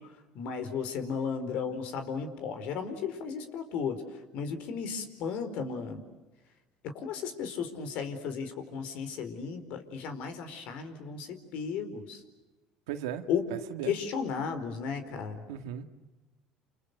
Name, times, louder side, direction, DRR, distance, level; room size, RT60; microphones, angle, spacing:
voice 1, 0.3-6.0 6.8-12.2 13.3-13.5 13.9-15.4, left 6 dB, 65° left, 9 dB, 4.5 m, -34 dB
voice 2, 12.9-13.2 13.5-13.9 15.5-15.8, right 10 dB, 90° right, 8 dB, 2.0 m, -36 dB
29.0 x 29.0 x 6.7 m, 1.1 s
supercardioid pair, 95°, 2 cm